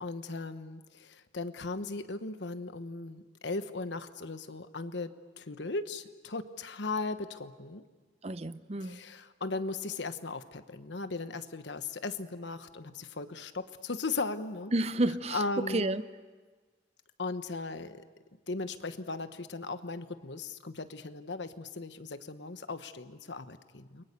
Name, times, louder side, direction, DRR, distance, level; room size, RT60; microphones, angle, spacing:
voice 1, 0.0-7.8 8.8-14.7 15.3-16.0 17.2-18.0 18.5-24.0, left 3 dB, 80° left, 1.2 m, -37 dB
voice 2, 8.2-9.0 14.7-16.0, right 2 dB, 35° right, 0.7 m, -30 dB
29.5 x 23.0 x 6.8 m
head